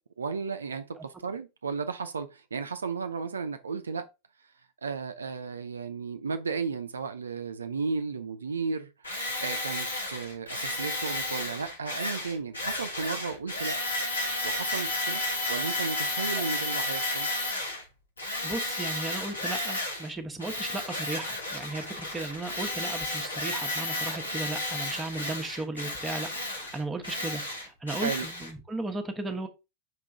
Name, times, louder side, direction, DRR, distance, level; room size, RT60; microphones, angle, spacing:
voice 1, 0.2-4.1 4.8-8.9 9.4-13.8 14.4-15.2 15.5-17.3 28.0-28.3, right 5 dB, 70° right, 0.6 m, -34 dB
Tools, 9.0-17.8 18.2-20.1 20.4-28.5, left 1 dB, 80° left, 2.5 m, -32 dB
voice 2, 18.4-29.5, right 2 dB, 10° right, 1.2 m, -36 dB
5.7 x 3.7 x 4.7 m
figure-of-eight pair, 90°, 0 cm